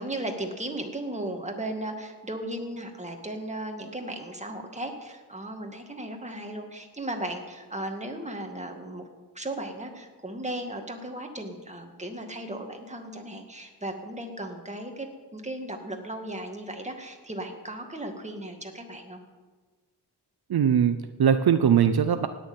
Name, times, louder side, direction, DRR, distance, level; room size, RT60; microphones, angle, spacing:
voice 1, 0.0-9.0 9.3-19.2, right 1 dB, 15° right, 4 dB, 2.1 m, -36 dB
voice 2, 20.5-22.3, right 8 dB, 65° right, 10 dB, 0.7 m, -21 dB
17.0 x 6.8 x 9.5 m, 1.4 s
wide cardioid pair, 105°, 41 cm